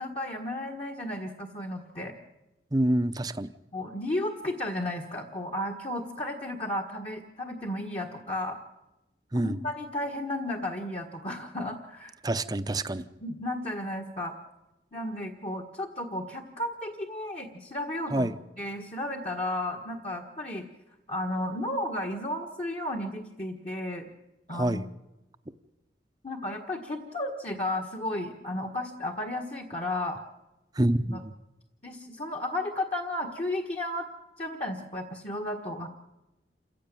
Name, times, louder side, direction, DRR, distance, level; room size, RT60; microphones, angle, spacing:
voice 1, 0.0-2.1 3.7-8.6 9.4-12.1 13.2-14.3 14.9-18.3 18.6-20.6 21.1-24.1 24.5-24.9 26.2-30.2 31.0-31.2 31.8-34.1 34.4-35.9, left 1 dB, 35° left, 1 dB, 1.6 m, -33 dB
voice 2, 2.7-3.5 9.3-9.6 12.2-13.0 18.1-18.4 24.5-24.8 30.7-31.3, right 1 dB, 20° right, 11 dB, 0.8 m, -27 dB
28.0 x 15.5 x 9.1 m, 0.99 s
head